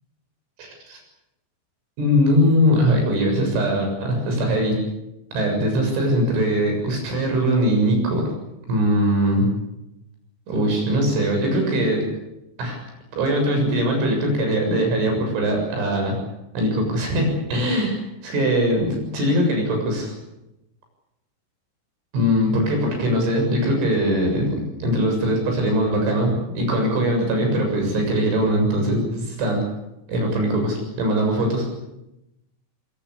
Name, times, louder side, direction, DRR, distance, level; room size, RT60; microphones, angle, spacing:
voice 1, 0.6-1.0 2.0-4.8 5.3-8.3 8.7-9.5 10.5-12.1 12.6-12.8 13.1-16.2 16.5-20.1 22.1-29.6 30.1-31.7, equal, 70° right, 3 dB, 9.5 m, -21 dB
24.5 x 21.5 x 8.5 m, 0.91 s
omnidirectional pair, 5.7 m